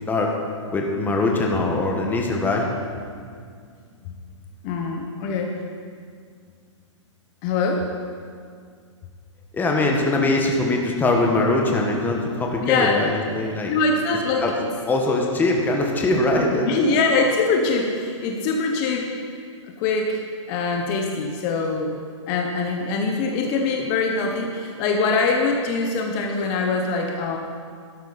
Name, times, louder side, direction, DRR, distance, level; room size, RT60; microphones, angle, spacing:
voice 1, 0.7-2.7 9.5-13.7 14.4-14.5 14.9-16.7, left 2 dB, 10° left, 0 dB, 1.4 m, -22 dB
voice 2, 4.6-5.6 7.4-7.9 12.6-13.0 13.7-14.7 16.7-19.1 19.8-27.4, left 4 dB, 35° left, 2 dB, 1.2 m, -23 dB
12.0 x 12.0 x 4.2 m, 2.1 s
hypercardioid pair, 135°, 16 cm